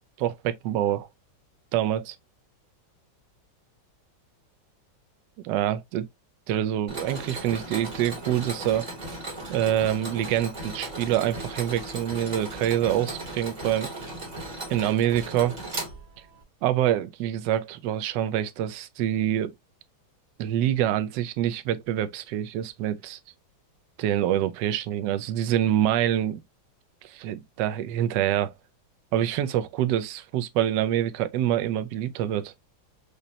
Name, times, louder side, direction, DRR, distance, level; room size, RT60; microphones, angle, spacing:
voice 1, 0.2-1.1 1.7-2.2 5.4-6.1 6.5-8.9 9.5-13.9 14.7-15.6 16.6-19.5 20.4-23.2 24.0-26.4 27.0-28.5 29.1-32.5, right 11 dB, 75° right, 1.1 m, -26 dB
Mechanisms, 6.9-16.4, right 2 dB, 30° right, 0.8 m, -37 dB
5.1 x 2.1 x 2.7 m
omnidirectional pair, 2.2 m